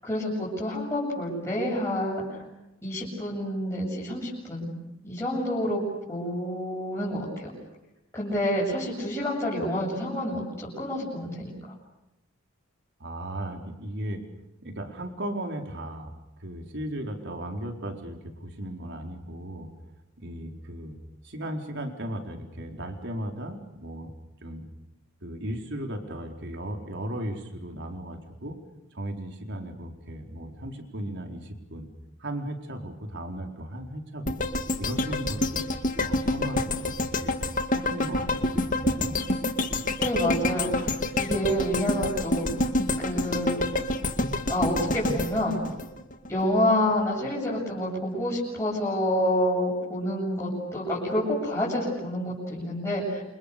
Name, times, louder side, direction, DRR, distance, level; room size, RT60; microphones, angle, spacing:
voice 1, 0.0-2.4 2.8-4.7 5.0-7.5 8.1-11.7 39.9-42.7 43.0-43.6 44.5-45.6 46.3-53.2, left 1 dB, 15° left, -6 dB, 7.9 m, -28 dB
voice 2, 13.0-14.2 14.6-16.1 16.4-19.7 20.2-21.0 21.2-24.1 24.4-24.7 25.2-28.6 28.9-31.9 32.2-35.7 36.0-37.4 37.7-39.2, right 1 dB, 60° right, 3 dB, 4.4 m, -36 dB
sound 1, 34.3-46.5 46.9-47.0, left 2 dB, 40° left, 2.1 m, -28 dB
28.5 x 28.0 x 6.9 m, 0.94 s
head